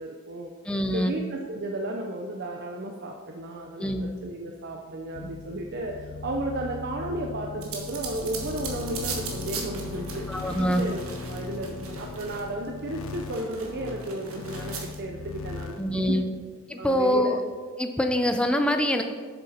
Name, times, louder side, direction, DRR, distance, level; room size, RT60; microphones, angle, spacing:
voice 1, 0.0-0.5 0.9-10.3 10.6-16.2 16.8-17.3, right 1 dB, 50° right, 1 dB, 0.6 m, -34 dB
voice 2, 0.7-1.1 3.8-4.1 10.3-10.8 15.8-16.2 16.7-17.4 17.8-19.0, equal, 5° left, 5 dB, 0.5 m, -24 dB
sound 1, 5.1-16.2, left 4 dB, 70° left, 0.5 m, -38 dB
sound 2, 7.6-12.7 13.0-15.0, right 5 dB, 80° right, 1.3 m, -39 dB
7.8 x 6.9 x 4.2 m, 1.5 s
head